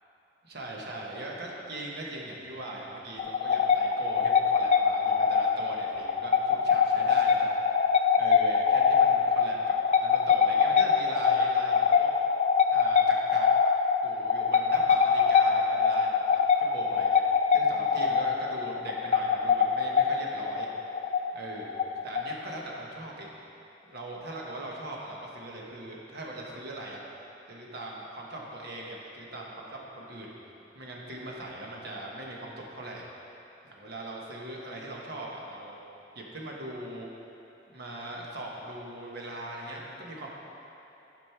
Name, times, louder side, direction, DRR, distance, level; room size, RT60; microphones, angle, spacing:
voice 1, 0.4-7.5 8.2-9.7 10.0-12.1 12.7-13.5 14.0-20.7 21.3-21.8 22.0-23.3 23.9-27.0 27.5-30.3 30.7-33.1 33.6-35.8 36.1-37.1 37.7-40.3, right 1 dB, 60° right, -2 dB, 1.2 m, -40 dB
sound 1, 3.2-22.6, left 6 dB, 40° left, 0.4 m, -24 dB
11.0 x 5.2 x 4.5 m, 3.0 s
head